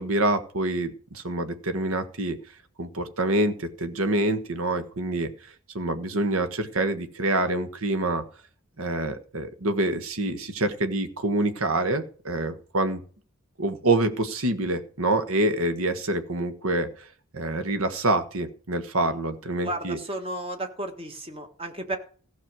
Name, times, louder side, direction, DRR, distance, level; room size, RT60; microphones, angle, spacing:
voice 1, 0.0-2.4 2.8-5.3 5.7-8.2 8.8-13.0 13.6-17.1 17.3-20.0, right 2 dB, 75° right, 9 dB, 1.4 m, -26 dB
voice 2, 19.6-22.0, right 1 dB, 25° right, 6 dB, 1.5 m, -33 dB
15.0 x 6.4 x 6.2 m, 0.42 s
head